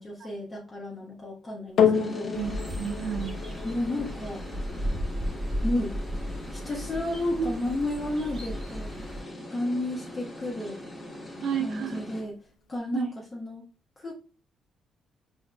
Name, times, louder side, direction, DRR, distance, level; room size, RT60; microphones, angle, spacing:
voice 1, 0.0-2.3 3.6-4.4 5.6-5.9 6.5-8.9 9.5-10.8 11.6-12.4 12.7-13.6 14.0-14.1, left 1 dB, 25° left, -4 dB, 1.1 m, -32 dB
sound 1, 1.8-10.3 11.1-11.2, left 7 dB, 75° left, 0.6 m, -32 dB
sound 2, 1.9-12.2, left 1 dB, 5° left, 1.5 m, -42 dB
sound 3, 2.3-9.2, equal, 35° right, 1.6 m, -35 dB
voice 2, 2.3-3.4 7.4-7.5 11.4-12.1 12.9-13.1, right 7 dB, 60° right, 8 dB, 0.6 m, -31 dB
4.5 x 3.5 x 2.2 m, 0.34 s
cardioid pair, 90°, 0 cm